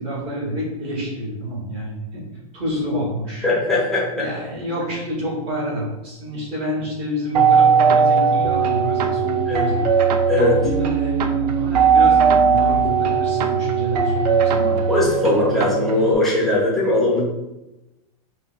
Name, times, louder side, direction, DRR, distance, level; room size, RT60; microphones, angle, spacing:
voice 1, 0.0-2.3 2.5-3.5 4.1-9.9 10.3-14.8, equal, 25° right, -6 dB, 1.2 m, -28 dB
voice 2, 3.4-4.2 9.5-9.6 10.3-10.5 14.9-17.2, left 2 dB, ahead, -7 dB, 0.7 m, -19 dB
sound 1, 7.3-16.1, right 6 dB, 80° right, 0.4 m, -18 dB
5.1 x 2.1 x 2.4 m, 0.98 s
supercardioid pair, 170°, 20 cm